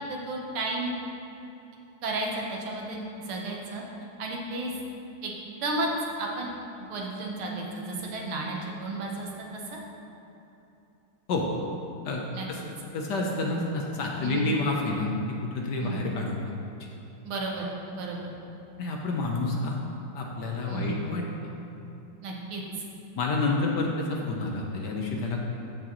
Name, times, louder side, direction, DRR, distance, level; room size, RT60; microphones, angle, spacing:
voice 1, 0.1-0.9 2.0-3.8 4.2-4.7 5.2-5.3 5.6-5.9 6.2-6.5 6.9-9.3 9.7-9.8 12.3-12.7 14.2-14.5 15.8-16.0 17.3-18.3 20.7-21.1 22.2-22.6, right 2 dB, 80° right, -1 dB, 2.0 m, -33 dB
voice 2, 12.0-12.6 12.9-16.4 18.8-19.8 20.1-21.3 23.2-25.5, left 2 dB, 65° left, 0 dB, 1.2 m, -29 dB
13.5 x 6.2 x 3.0 m, 2.9 s
omnidirectional pair, 2.3 m